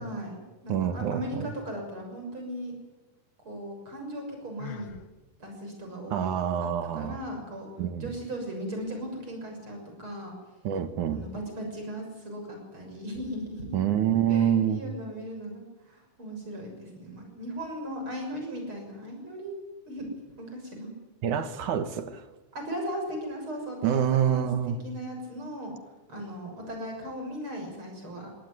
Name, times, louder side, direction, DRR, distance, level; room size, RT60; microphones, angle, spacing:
voice 1, 0.0-2.8 3.4-4.9 5.4-6.3 6.9-7.7 8.0-10.3 11.1-13.8 14.3-19.6 19.9-20.9 22.5-25.7 26.1-28.3, equal, 40° right, 7.4 m, -37 dB
voice 2, 0.7-1.5 6.1-7.2 7.8-8.1 10.6-11.2 13.7-14.8 21.2-22.2 23.8-24.8, right 9 dB, 70° right, 2.8 m, -26 dB
Sigh, 4.6-5.1, left 11 dB, 60° left, 1.2 m, -42 dB
21.5 x 18.0 x 9.7 m
omnidirectional pair, 3.6 m